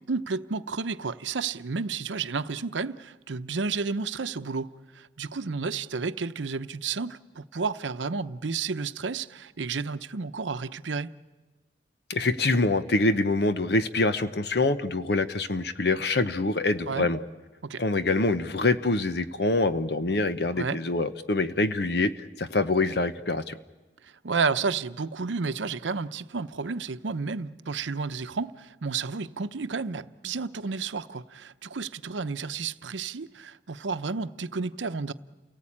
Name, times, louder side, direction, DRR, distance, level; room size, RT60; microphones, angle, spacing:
voice 1, 0.0-4.7 4.9-11.1 16.9-17.1 17.6-17.8 20.6-20.8 24.2-35.1, right 4 dB, 85° right, 0.7 m, -31 dB
voice 2, 12.1-17.2 17.8-22.1 22.4-23.5, left 2 dB, 60° left, 0.9 m, -25 dB
29.0 x 18.5 x 8.6 m
head